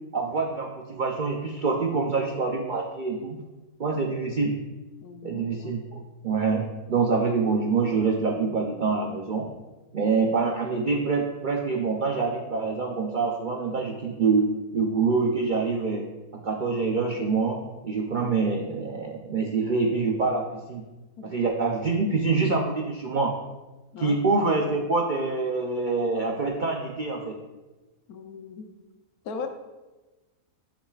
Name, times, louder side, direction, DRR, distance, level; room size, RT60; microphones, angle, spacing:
voice 1, 0.1-3.4 3.8-4.6 5.2-9.5 9.9-16.1 16.3-20.8 21.2-23.3 24.0-27.4, right 4 dB, 90° right, 1 dB, 0.4 m, -26 dB
voice 2, 5.0-5.5 21.2-21.4 23.9-24.2 28.1-28.7 29.2-29.5, left 5 dB, 75° left, 5 dB, 1.2 m, -38 dB
10.0 x 4.8 x 2.3 m, 1.1 s
omnidirectional pair, 1.6 m